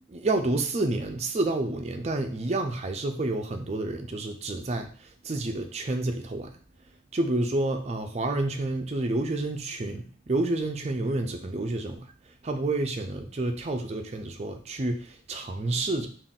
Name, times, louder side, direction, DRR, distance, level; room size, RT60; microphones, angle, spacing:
voice 1, 0.1-6.5 7.1-12.0 12.3-16.1, right 2 dB, 35° right, 5 dB, 0.4 m, -29 dB
4.0 x 2.4 x 3.6 m, 0.43 s
head